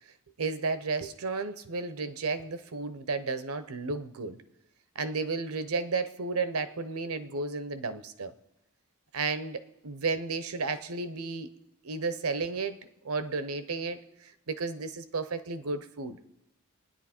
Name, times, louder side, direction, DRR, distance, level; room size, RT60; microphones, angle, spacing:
voice 1, 0.4-4.4 4.9-8.3 9.1-11.5 11.8-12.8 13.0-16.2, right 4 dB, 90° right, 12 dB, 0.9 m, -33 dB
26.0 x 10.0 x 4.4 m, 0.89 s
head